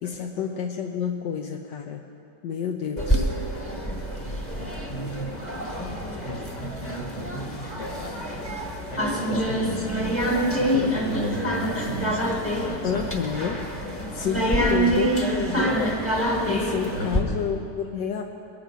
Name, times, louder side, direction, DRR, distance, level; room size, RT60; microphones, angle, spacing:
voice 1, 0.0-2.0 2.4-3.3 12.8-13.6 14.1-16.2 16.5-18.2, left 7 dB, 80° left, 3 dB, 1.4 m, -29 dB
sound 1, 3.0-17.2, equal, 10° left, 1.2 m, -26 dB
voice 2, 4.6-5.4 6.2-13.1 16.9-17.4, equal, 45° left, 0 dB, 2.1 m, -35 dB
21.5 x 9.3 x 5.1 m, 2.5 s
omnidirectional pair, 1.9 m